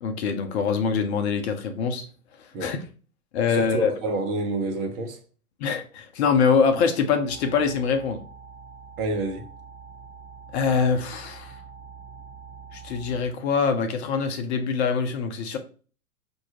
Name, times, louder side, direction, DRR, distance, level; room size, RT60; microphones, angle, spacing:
voice 1, 0.0-2.1 2.6-2.8 3.3-3.9 5.6-8.2 10.5-11.5 12.7-15.6, left 5 dB, 45° left, 0.8 m, -24 dB
voice 2, 3.5-5.2 9.0-9.5, right 2 dB, 30° right, 1.0 m, -28 dB
sound 1, 7.3-13.2, right 5 dB, 10° right, 0.3 m, -45 dB
5.9 x 2.7 x 2.9 m
figure-of-eight pair, 105°, 44 cm